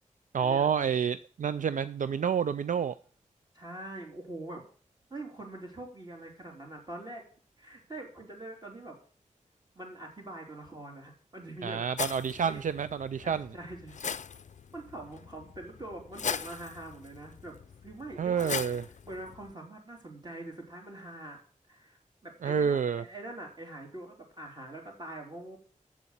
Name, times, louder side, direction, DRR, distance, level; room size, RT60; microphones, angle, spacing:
voice 1, 0.3-2.9 11.6-13.5 18.2-18.8 22.4-23.0, right 7 dB, 75° right, 0.4 m, -29 dB
voice 2, 3.5-4.6 5.1-7.2 7.6-9.0 9.8-11.8 12.4-12.6 13.2-14.0 14.7-17.6 17.8-18.6 19.1-21.4 21.7-25.6, right 2 dB, 30° right, 3.8 m, -44 dB
sound 1, 12.0-19.5, left 6 dB, 65° left, 0.4 m, -40 dB
7.5 x 7.0 x 8.0 m
wide cardioid pair, 85°, 13 cm